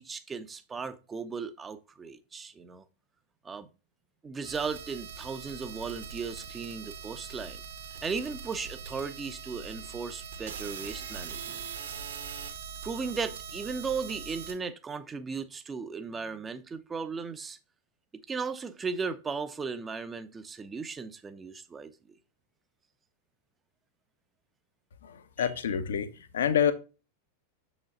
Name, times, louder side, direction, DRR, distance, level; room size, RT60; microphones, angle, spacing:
voice 1, 0.0-2.8 3.4-3.7 4.2-7.6 8.0-11.6 12.8-17.6 18.3-21.9 25.4-25.5, right 5 dB, 15° right, 0.7 m, -36 dB
sound 1, 4.4-14.5, right 6 dB, 60° right, 1.5 m, -42 dB
voice 2, 25.0-26.1 26.3-26.7, left 8 dB, 65° left, 0.8 m, -27 dB
7.1 x 5.1 x 3.9 m
figure-of-eight pair, 90°, 0 cm